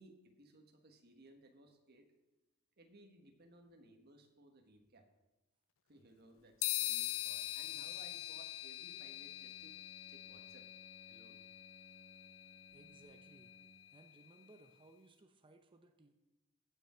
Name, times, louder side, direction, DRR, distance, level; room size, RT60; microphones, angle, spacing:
voice 1, 0.0-2.1 2.8-5.1 5.9-9.8 10.1-10.7 11.1-11.4, right 2 dB, 50° right, 4 dB, 1.4 m, -62 dB
sound 1, 6.6-14.3, left 18 dB, 70° left, 0.4 m, -43 dB
Bowed string instrument, 8.9-14.0, right 2 dB, 85° right, 2.6 m, -63 dB
voice 2, 12.7-13.5 13.9-16.1, right 2 dB, 25° right, 5 dB, 0.7 m, -62 dB
16.0 x 6.0 x 4.4 m, 1.1 s
head